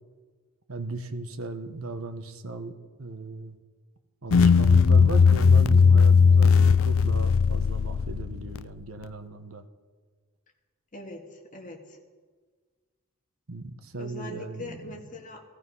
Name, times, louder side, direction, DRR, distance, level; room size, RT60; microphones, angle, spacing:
voice 1, 0.7-2.7 3.0-3.6 4.2-9.7 13.5-15.1, right 2 dB, 80° right, 8 dB, 1.2 m, -36 dB
sound 1, 4.3-8.6, left 5 dB, 70° left, 0.4 m, -18 dB
voice 2, 10.9-12.0 14.0-15.4, left 1 dB, 35° left, 1 dB, 2.1 m, -41 dB
16.5 x 14.5 x 5.6 m, 1.5 s
head